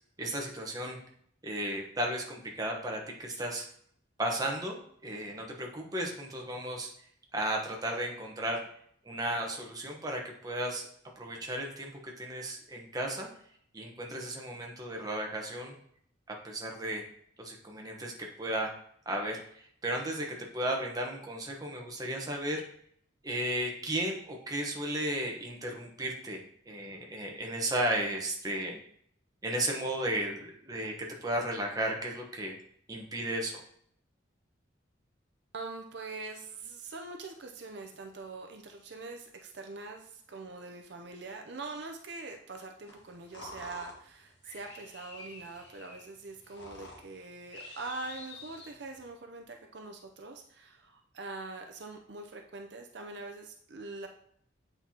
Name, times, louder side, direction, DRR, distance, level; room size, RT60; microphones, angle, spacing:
voice 1, 0.2-1.0 1.4-3.7 4.2-6.9 7.3-8.6 9.0-10.8 11.2-11.9 12.2-13.3 13.7-15.8 16.4-17.0 17.4-18.7 19.1-19.4 19.8-20.3 20.5-22.6 23.2-26.4 26.7-28.8 29.4-30.9 31.2-32.5 32.9-33.6, right 1 dB, 20° right, 0 dB, 1.0 m, -34 dB
voice 2, 35.5-54.1, right 3 dB, 60° right, 3 dB, 0.6 m, -43 dB
sound 1, 42.9-49.1, left 2 dB, 60° left, 1.7 m, -49 dB
7.9 x 4.5 x 2.8 m, 0.66 s
head